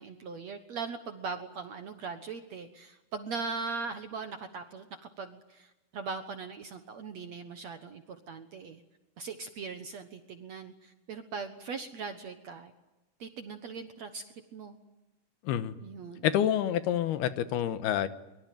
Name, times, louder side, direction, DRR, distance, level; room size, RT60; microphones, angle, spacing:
voice 1, 0.0-4.9 5.2-8.8 9.2-12.7 13.2-14.2 14.5-14.8 15.8-16.3, right 4 dB, 60° right, 8 dB, 1.9 m, -40 dB
voice 2, 15.4-15.7 16.2-18.1, left 10 dB, 80° left, 12 dB, 3.1 m, -28 dB
24.0 x 23.0 x 9.4 m, 1.0 s
omnidirectional pair, 4.6 m